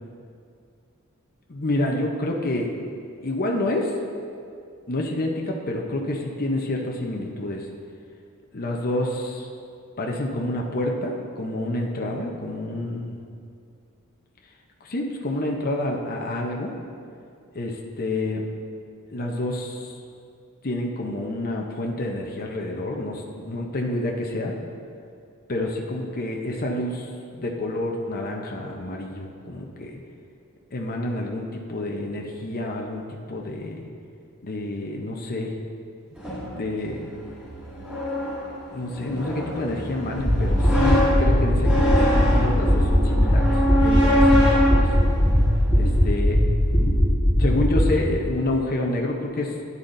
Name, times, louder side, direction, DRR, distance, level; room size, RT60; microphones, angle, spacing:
voice 1, 1.5-2.7 3.2-3.9 4.9-7.7 8.5-9.5 10.0-13.2 14.8-16.7 17.5-18.4 19.1-20.0 20.6-24.5 25.5-30.0 30.7-33.9 34.4-35.5 36.5-37.0 38.7-44.9 45.7-46.4 47.4-49.5, left 1 dB, 45° left, 0 dB, 0.8 m, -28 dB
sound 1, 36.2-46.1, equal, 5° right, 2.1 m, -25 dB
sound 2, 40.2-47.9, equal, 20° left, 1.8 m, -19 dB
12.5 x 9.8 x 2.7 m, 2.4 s
head